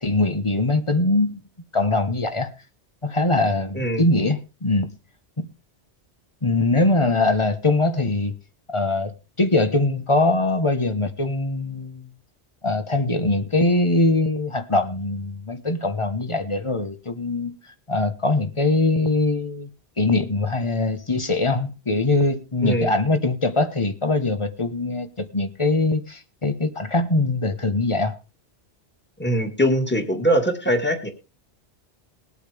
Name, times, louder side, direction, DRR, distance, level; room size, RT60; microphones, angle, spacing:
voice 1, 0.0-1.4 1.7-2.5 3.0-4.9 5.4-5.5 6.4-8.3 8.7-12.1 12.6-17.6 17.9-19.7 20.0-28.2, left 2 dB, 30° left, 1.2 m, -22 dB
voice 2, 22.6-22.9 29.2-31.1, equal, 10° left, 2.1 m, -22 dB
21.0 x 8.5 x 3.5 m
omnidirectional pair, 1.1 m